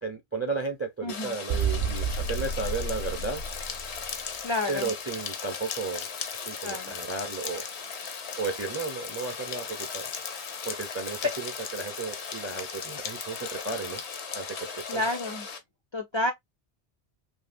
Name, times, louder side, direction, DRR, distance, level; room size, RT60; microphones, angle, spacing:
voice 1, 0.0-3.4 4.7-6.1 6.5-7.7 8.4-10.1 10.6-14.0 14.3-15.0, right 4 dB, 20° right, 0.4 m, -34 dB
voice 2, 1.0-1.4 4.4-4.9 6.6-6.9 11.2-11.3 14.9-15.5 15.9-16.3, left 2 dB, 50° left, 0.3 m, -29 dB
Rain, 1.1-15.6, left 5 dB, 90° left, 1.1 m, -39 dB
sound 1, 1.2-15.4, left 8 dB, 75° left, 0.8 m, -41 dB
sound 2, 1.5-4.2, right 5 dB, 65° right, 0.8 m, -31 dB
2.7 x 2.7 x 2.4 m
omnidirectional pair, 1.1 m